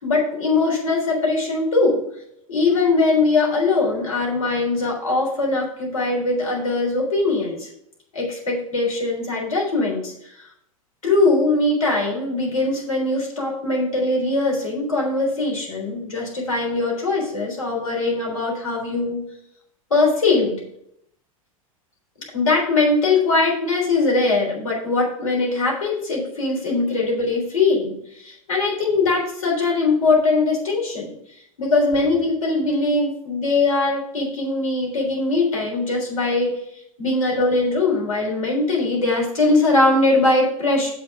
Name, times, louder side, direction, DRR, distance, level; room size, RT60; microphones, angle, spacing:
voice 1, 0.0-2.0 2.5-7.7 8.1-10.4 11.0-19.2 19.9-20.6 22.3-31.1 31.6-36.6 37.0-40.9, left 3 dB, 75° left, -2 dB, 3.7 m, -21 dB
7.5 x 5.9 x 6.0 m, 0.72 s
figure-of-eight pair, 90°, 18 cm